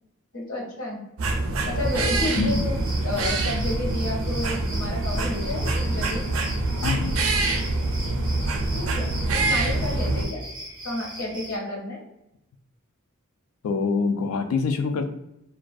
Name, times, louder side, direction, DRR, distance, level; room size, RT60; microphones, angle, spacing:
voice 1, 0.3-1.0 1.6-2.8 3.0-6.2 8.7-10.4 10.8-12.0, left 2 dB, 75° left, -2 dB, 0.9 m, -31 dB
sound 1, 1.2-10.2, right 2 dB, 80° right, 0.4 m, -25 dB
sound 2, 1.8-11.6, right 1 dB, 20° right, 0.5 m, -39 dB
voice 2, 2.4-2.7 6.8-7.1 13.6-15.1, left 4 dB, 90° left, 7 dB, 0.3 m, -25 dB
2.3 x 2.2 x 2.5 m, 0.88 s
head